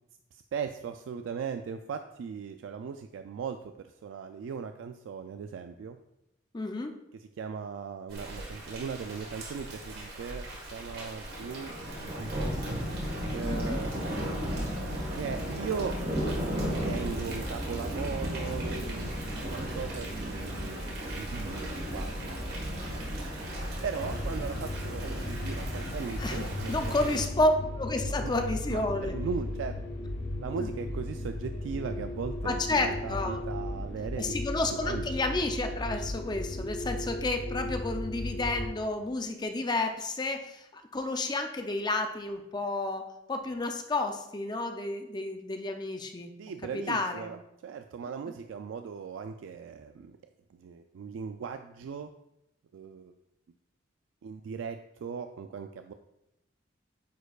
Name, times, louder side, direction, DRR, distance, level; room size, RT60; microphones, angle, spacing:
voice 1, 0.5-6.0 7.1-12.8 13.3-13.9 15.1-19.1 19.5-22.3 23.8-27.4 28.0-28.4 28.7-29.8 30.4-34.4 34.7-35.1 46.4-50.2 50.6-52.1 52.7-53.1 54.2-55.9, right 6 dB, 85° right, 7 dB, 0.3 m, -38 dB
voice 2, 6.5-6.9 13.4-13.8 26.2-29.2 30.6-30.7 32.4-33.4 34.2-46.3 46.7-47.3 48.3-48.4, left 2 dB, 20° left, 6 dB, 0.5 m, -31 dB
Thunder / Rain, 8.1-27.2, equal, 55° right, 1.5 m, -35 dB
sound 1, 24.0-38.7, left 1 dB, 65° left, 1.2 m, -36 dB
9.2 x 4.4 x 2.3 m, 0.88 s
head